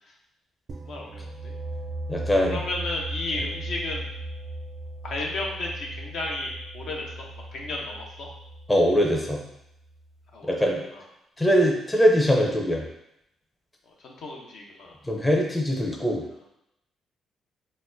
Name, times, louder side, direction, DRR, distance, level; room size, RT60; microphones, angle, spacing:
sound 1, 0.7-10.3, right 1 dB, 50° right, 0.4 m, -38 dB
voice 1, 0.8-1.5 2.5-4.1 5.0-7.3 7.5-8.3 10.3-10.5 10.9-11.0 14.0-15.0, left 2 dB, 70° left, -2 dB, 0.7 m, -33 dB
voice 2, 2.1-2.6 8.7-9.4 10.5-10.8 11.4-12.8 15.0-16.2, equal, 15° left, 0 dB, 0.5 m, -22 dB
4.0 x 2.1 x 2.6 m, 0.81 s
cardioid pair, 90°, 0 cm